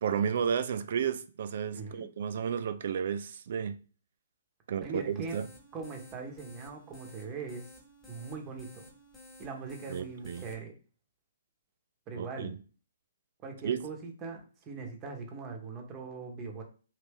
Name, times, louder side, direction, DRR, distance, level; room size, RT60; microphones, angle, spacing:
voice 1, 0.0-3.8 4.7-5.4 9.9-10.4 12.2-12.6 13.6-13.8, right 7 dB, 55° right, 0.3 m, -32 dB
voice 2, 1.7-2.1 4.8-5.4 5.7-7.7 8.1-8.9 9.4-10.7 12.1-12.5 13.4-16.6, right 4 dB, 25° right, 1.0 m, -41 dB
sound 1, 5.0-10.5, left 1 dB, 15° left, 1.1 m, -54 dB
3.0 x 2.7 x 3.5 m
figure-of-eight pair, 125°, 0 cm